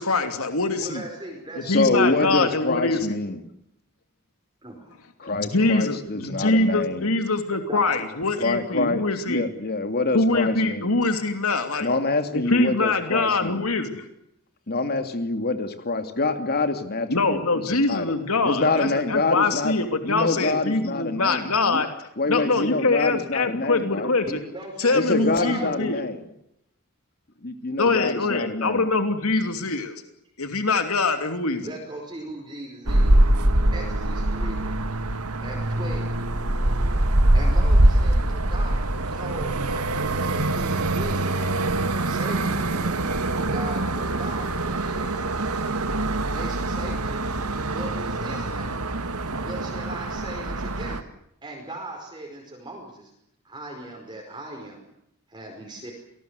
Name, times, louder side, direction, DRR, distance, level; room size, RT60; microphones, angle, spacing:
voice 1, 0.0-1.0 1.5-3.1 5.2-9.5 10.1-11.9 12.3-14.0 17.1-21.9 22.3-24.2 24.8-26.0 27.8-30.0 30.4-31.6, left 3 dB, 70° left, 7 dB, 2.9 m, -24 dB
voice 2, 0.8-2.6 4.6-4.9 5.2-5.3 7.7-8.0 24.2-26.0 31.6-33.2 33.7-34.7 35.4-36.1 37.3-41.5 41.9-43.0 43.4-45.8 46.2-47.4 47.7-48.8 49.4-51.0 51.4-53.1 53.4-54.8 55.3-55.9, right 1 dB, 20° right, 1 dB, 5.0 m, -38 dB
voice 3, 1.6-3.4 5.2-7.1 8.4-10.9 11.8-13.6 14.7-17.6 17.9-18.1 18.4-19.8 20.0-21.8 22.2-24.1 24.9-26.2 27.4-28.9, left 3 dB, 45° left, 8 dB, 2.6 m, -26 dB
sound 1, 32.9-51.0, right 1 dB, 85° right, 1.9 m, -23 dB
27.5 x 20.0 x 8.2 m, 0.77 s
head